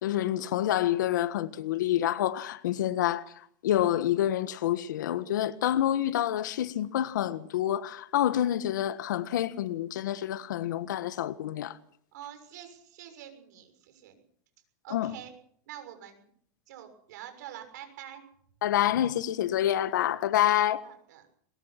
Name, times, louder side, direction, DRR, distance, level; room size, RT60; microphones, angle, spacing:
voice 1, 0.0-3.2 3.6-11.8 14.9-15.1 18.6-20.8, left 12 dB, 80° left, 1.5 m, -27 dB
voice 2, 12.1-14.2 14.8-15.3 15.7-16.2 16.7-18.2 20.8-21.2, right 11 dB, 65° right, 6.6 m, -46 dB
22.5 x 22.0 x 6.0 m
supercardioid pair, 155°, 10 cm